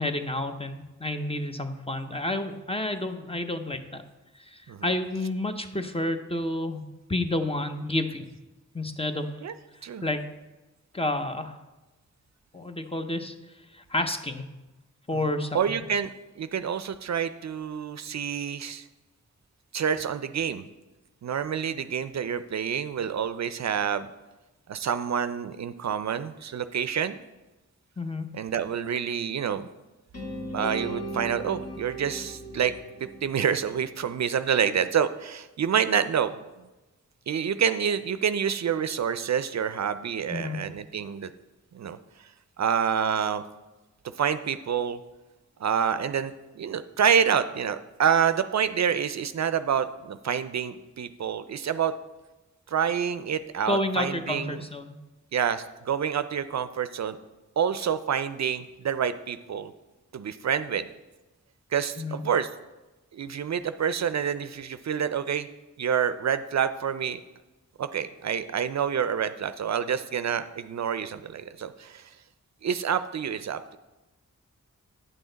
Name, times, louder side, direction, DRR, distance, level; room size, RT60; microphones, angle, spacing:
voice 1, 0.0-4.0 4.5-6.8 7.1-8.3 8.7-9.3 10.0-10.2 10.9-11.6 12.5-13.3 13.7-14.4 15.1-15.6 28.0-28.3 40.3-40.6 53.7-55.0 62.0-62.2, left 1 dB, 20° left, 7 dB, 0.7 m, -30 dB
voice 2, 15.5-18.9 19.7-20.7 21.2-24.1 24.7-27.2 28.3-29.7 30.5-32.7 33.0-36.3 37.3-41.3 41.7-42.0 42.6-43.4 44.2-45.0 45.6-51.9 52.7-54.6 55.3-57.2 57.6-59.7 60.1-60.9 61.7-62.5 63.1-65.5 65.8-67.2 67.8-72.1 72.6-73.8, right 7 dB, 60° right, 12 dB, 0.4 m, -27 dB
sound 1, 30.1-34.2, right 1 dB, 50° left, 1.7 m, -38 dB
8.9 x 6.3 x 3.9 m, 1.1 s
cardioid pair, 50°, 31 cm